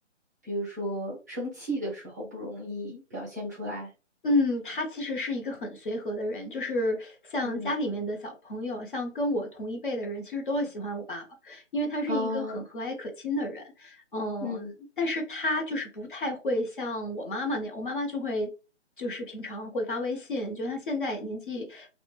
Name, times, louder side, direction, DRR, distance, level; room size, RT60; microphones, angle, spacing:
voice 1, 0.4-3.9 7.4-7.7 12.1-12.6 14.4-14.7, equal, 15° right, 0.5 m, -34 dB
voice 2, 4.2-14.7 15.0-18.5 19.0-21.9, left 1 dB, 45° left, 0.7 m, -31 dB
2.4 x 2.1 x 3.0 m
figure-of-eight pair, 150°, 37 cm